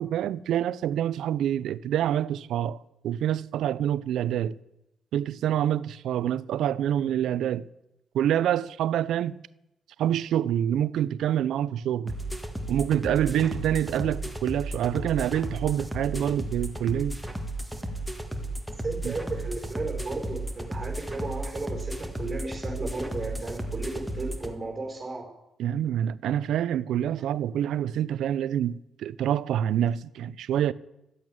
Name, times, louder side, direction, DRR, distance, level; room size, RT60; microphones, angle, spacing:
voice 1, 0.0-4.6 5.1-7.7 8.1-9.4 10.0-12.1 12.7-17.2 19.0-19.1 25.6-30.7, right 10 dB, 75° right, 0.5 m, -26 dB
sound 1, 12.1-24.5, right 1 dB, ahead, 1.7 m, -34 dB
voice 2, 18.8-25.3, right 3 dB, 25° right, 4.4 m, -34 dB
12.5 x 8.5 x 9.0 m
cardioid pair, 90°, 0 cm